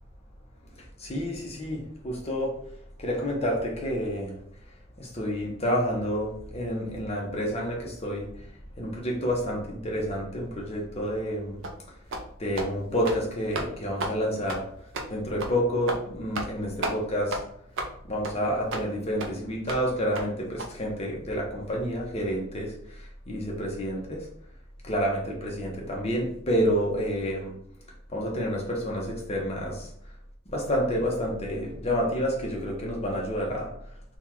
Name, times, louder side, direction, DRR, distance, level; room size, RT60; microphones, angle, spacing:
voice 1, 1.0-2.5 3.0-4.3 5.0-8.5 8.8-11.6 12.4-14.7 15.1-17.4 18.0-24.3 24.8-27.6 28.1-29.9 30.5-33.7, equal, 30° left, -1 dB, 0.9 m, -29 dB
sound 1, 11.6-11.8 12.1-12.3 12.6-12.7 13.0-13.2 13.5-13.7 14.0-14.2 14.5-14.6 14.9-15.1 15.4-15.5 15.9-16.0 16.3-16.5 16.8-17.0 17.3-17.4 17.8-17.9 18.2-18.4 18.7-18.9 19.2-19.3 19.7-19.8 20.2-20.3 20.6-20.7, right 2 dB, 60° right, 0.6 m, -32 dB
3.6 x 2.3 x 4.3 m, 0.67 s
head